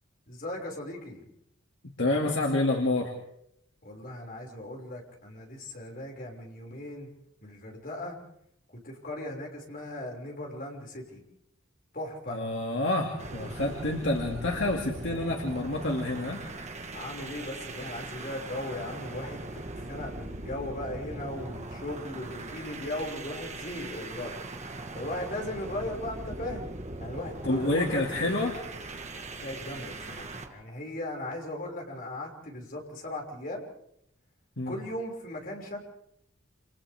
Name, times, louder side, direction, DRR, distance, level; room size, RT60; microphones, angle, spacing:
voice 1, 0.3-1.3 3.8-7.1 7.4-8.2 8.7-11.2 11.9-12.5 16.9-24.3 24.9-28.0 29.4-33.6 34.7-35.8, left 1 dB, 45° left, -1 dB, 5.9 m, -38 dB
voice 2, 2.0-3.1 12.3-16.4 27.4-28.6 34.6-34.7, left 2 dB, 65° left, 0 dB, 2.4 m, -28 dB
sound 1, 13.2-30.5, right 2 dB, 35° right, 1.7 m, -40 dB
29.0 x 28.5 x 3.6 m, 0.74 s
head